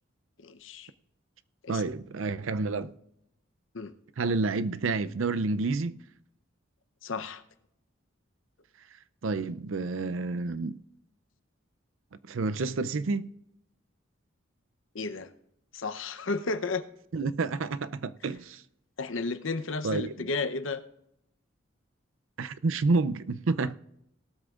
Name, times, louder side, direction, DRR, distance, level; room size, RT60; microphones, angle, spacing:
voice 1, 0.4-0.9 1.6-1.8 3.7-3.9 7.0-7.4 14.9-15.3 15.7-16.8 19.0-20.8, left 3 dB, 75° left, 0.8 m, -33 dB
voice 2, 1.7-2.9 4.2-6.0 9.2-10.8 12.3-13.3 17.1-18.6 19.8-20.1 22.4-23.7, right 3 dB, 75° right, 0.5 m, -29 dB
18.5 x 13.0 x 2.5 m
head